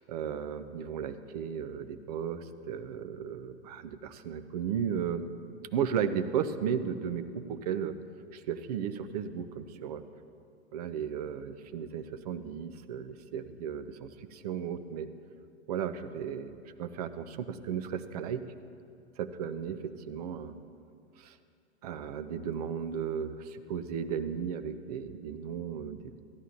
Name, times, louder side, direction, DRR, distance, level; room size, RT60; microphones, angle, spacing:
voice 1, 0.0-5.3 5.7-8.0 8.3-10.0 10.7-15.1 15.7-18.5 19.2-20.5 21.2-21.4 21.8-26.2, right 8 dB, 35° right, 10 dB, 0.5 m, -35 dB
14.5 x 11.0 x 2.9 m, 2.4 s
figure-of-eight pair, 100°, 34 cm